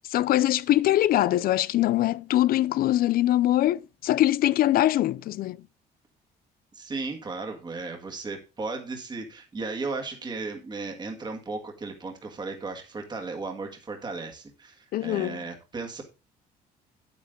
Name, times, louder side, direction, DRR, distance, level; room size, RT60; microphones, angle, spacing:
voice 1, 0.1-5.6 14.9-15.4, left 14 dB, 60° left, 0.5 m, -23 dB
voice 2, 6.7-16.0, right 3 dB, 25° right, 1.9 m, -35 dB
8.6 x 8.5 x 3.7 m
cardioid pair, 110°, 17 cm